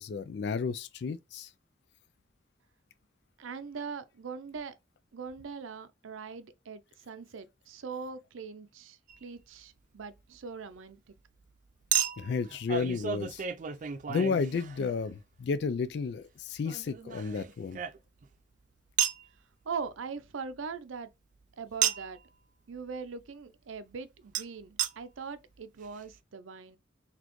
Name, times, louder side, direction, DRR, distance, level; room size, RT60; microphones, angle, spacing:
voice 1, 0.0-1.5 12.2-13.4 14.1-17.8, left 5 dB, 60° left, 0.3 m, -32 dB
voice 2, 3.4-4.7 5.1-11.0 19.7-21.1 21.6-22.2 22.7-26.8, right 5 dB, 90° right, 0.5 m, -41 dB
Chink clink, 9.1-9.2 11.9-15.1 16.6-18.3 19.0-19.3 21.8-22.2 24.3-24.4 24.8-24.9 25.6-25.7 25.8-25.9, right 9 dB, 40° right, 0.3 m, -32 dB
4.1 x 2.8 x 3.0 m
head